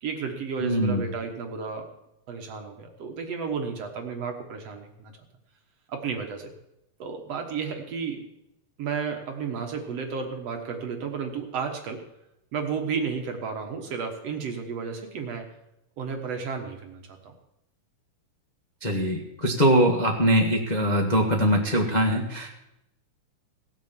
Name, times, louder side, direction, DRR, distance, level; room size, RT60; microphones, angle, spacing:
voice 1, 0.0-1.9 2.3-5.1 5.9-6.5 7.0-8.3 8.8-12.0 12.5-15.5 16.0-17.3, right 5 dB, 60° right, 4 dB, 2.1 m, -32 dB
voice 2, 0.6-1.1 18.8-22.6, equal, 30° left, -1 dB, 0.8 m, -22 dB
17.0 x 8.2 x 7.3 m, 0.86 s
omnidirectional pair, 3.8 m